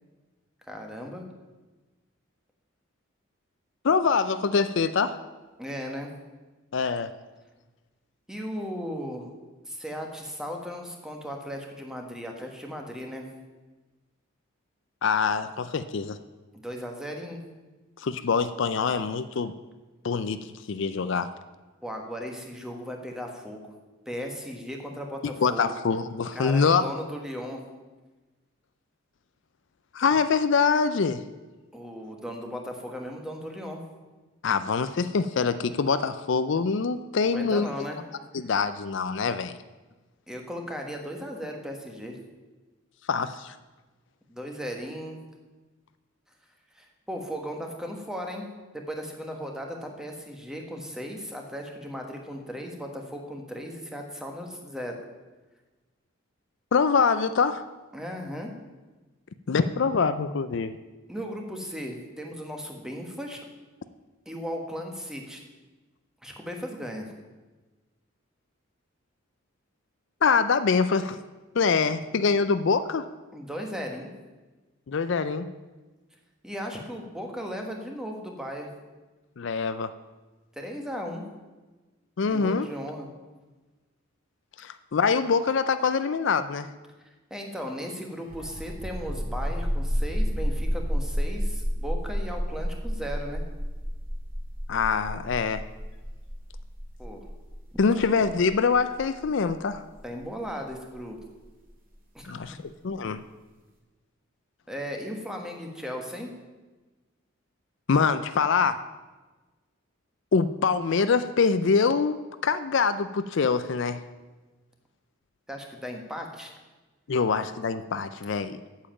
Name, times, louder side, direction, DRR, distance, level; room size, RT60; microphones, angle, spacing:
voice 1, 0.7-1.2 5.6-6.1 8.3-9.3 9.7-13.3 16.5-17.4 21.8-23.7 24.0-25.7 26.3-27.6 31.7-33.8 37.2-38.0 40.3-42.2 44.3-45.2 46.7-48.5 48.7-55.0 57.9-58.5 61.1-63.4 64.2-65.4 66.2-67.0 73.3-74.1 76.4-78.7 80.5-81.2 82.3-83.1 87.3-93.4 97.0-97.2 97.9-98.1 100.0-101.2 102.1-102.3 104.7-106.3 115.5-116.5, equal, 5° right, 2 dB, 1.4 m, -36 dB
voice 2, 3.8-5.2 6.7-7.1 15.0-16.2 18.0-19.5 20.0-20.4 20.7-21.3 25.4-26.8 29.9-31.2 34.4-37.7 38.3-39.5 43.1-43.5 56.7-57.6 59.5-60.8 70.2-71.2 71.6-73.1 74.9-75.5 79.4-79.9 82.2-82.7 84.6-86.7 94.7-95.6 97.8-99.8 102.3-102.6 102.8-103.2 107.9-108.8 110.3-114.0 117.1-118.6, left 5 dB, 60° left, 12 dB, 0.4 m, -24 dB
sound 1, 88.2-101.6, equal, 45° right, 2.2 m, -31 dB
8.5 x 7.4 x 8.8 m, 1.2 s
head